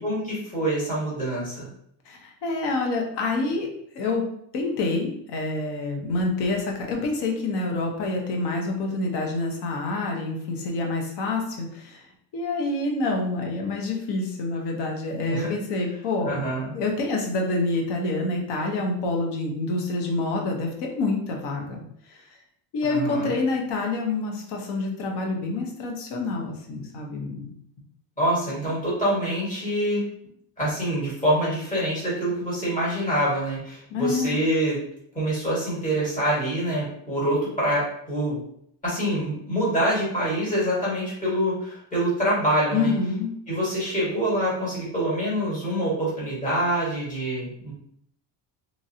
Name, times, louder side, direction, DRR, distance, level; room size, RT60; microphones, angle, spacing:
voice 1, 0.0-1.7 15.3-15.5 16.2-16.7 22.9-23.3 28.2-30.0 30.6-34.8 35.1-38.4 38.8-42.9 43.5-47.7, right 1 dB, 15° left, -8 dB, 1.4 m, -25 dB
voice 2, 2.1-3.7 3.9-4.2 4.5-12.1 12.3-16.4 16.7-21.8 22.1-22.2 22.7-27.5 33.9-34.3 42.7-43.3, left 3 dB, 65° left, 1 dB, 0.9 m, -27 dB
3.0 x 2.6 x 2.7 m, 0.70 s
cardioid pair, 155°, 44 cm